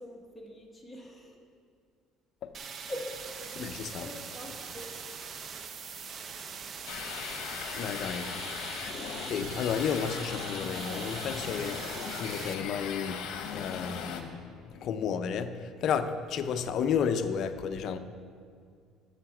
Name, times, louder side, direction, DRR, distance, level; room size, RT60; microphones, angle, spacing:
voice 1, 0.0-1.4 2.9-3.1 3.5-3.7 3.9-4.9, equal, 5° left, 1.1 m, -43 dB
sound 1, 2.5-12.5, right 6 dB, 30° right, 0.5 m, -42 dB
voice 2, 3.6-4.1 7.8-8.3 9.2-18.0, left 7 dB, 40° left, 0.5 m, -32 dB
sound 2, 6.9-14.2, left 6 dB, 60° left, 0.9 m, -38 dB
9.2 x 6.9 x 5.9 m
cardioid pair, 180°, 0 cm